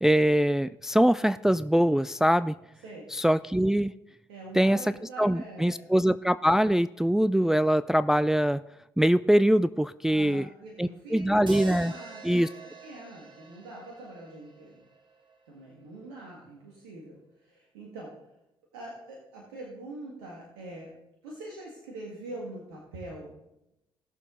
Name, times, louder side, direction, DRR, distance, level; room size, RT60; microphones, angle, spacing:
voice 1, 0.0-2.6 3.1-3.9 4.5-4.9 5.2-8.6 9.0-10.5 10.8-11.9 12.2-12.5, equal, 5° right, 14 dB, 0.3 m, -23 dB
voice 2, 4.3-5.9 10.1-12.4 12.8-14.8 15.5-18.1 18.7-20.9 21.2-23.3, right 2 dB, 85° right, -2 dB, 1.9 m, -43 dB
sound 1, 11.5-15.7, right 5 dB, 45° right, 2.0 m, -45 dB
17.0 x 7.0 x 3.8 m, 0.90 s
hypercardioid pair, 50°, 12 cm